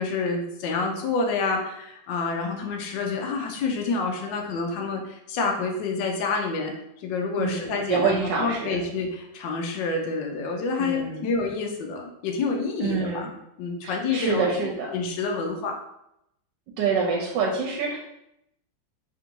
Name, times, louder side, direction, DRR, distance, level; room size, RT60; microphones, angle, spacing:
voice 1, 0.0-13.3 13.6-14.5 14.9-15.8, left 4 dB, 75° left, 1 dB, 1.3 m, -28 dB
voice 2, 7.4-8.8 10.8-11.3 12.8-13.3 13.8-14.9 16.8-18.0, right 5 dB, 75° right, 0 dB, 1.3 m, -26 dB
3.5 x 2.6 x 4.4 m, 0.81 s
omnidirectional pair, 2.0 m